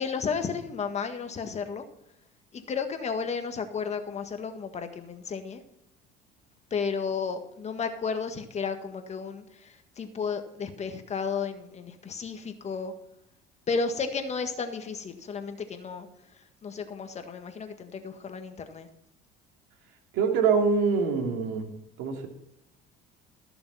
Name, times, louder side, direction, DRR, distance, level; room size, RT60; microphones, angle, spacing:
voice 1, 0.0-1.8 2.5-5.6 6.7-12.9 13.7-16.1 16.6-18.9, left 5 dB, 35° left, 6 dB, 1.7 m, -33 dB
voice 2, 20.1-21.7 22.0-22.3, right 5 dB, 75° right, 4 dB, 2.6 m, -24 dB
14.0 x 6.8 x 5.6 m, 0.81 s
supercardioid pair, 105°, 20 cm